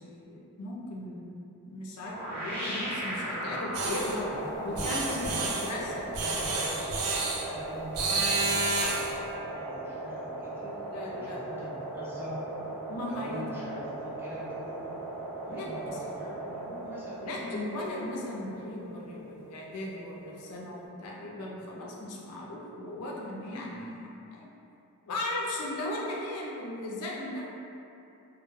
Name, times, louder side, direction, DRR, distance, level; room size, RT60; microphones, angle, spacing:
voice 1, 0.0-1.4 1.6-4.3 4.6-6.1 10.6-11.7 12.9-13.4 15.5-15.7 17.2-24.5 25.1-27.5, left 1 dB, 80° left, -3 dB, 0.4 m, -37 dB
sound 1, 2.0-20.9, right 1 dB, 5° left, 0.9 m, -39 dB
voice 2, 2.8-3.7 4.3-6.8 7.4-10.7 11.0-12.5 13.1-14.9 15.5-17.7, equal, 10° right, -9 dB, 0.4 m, -42 dB
sound 2, 3.7-4.2 4.7-5.8 6.1-7.4 7.9-9.1, right 3 dB, 70° right, 0.4 m, -30 dB
2.1 x 2.0 x 3.0 m, 2.8 s
head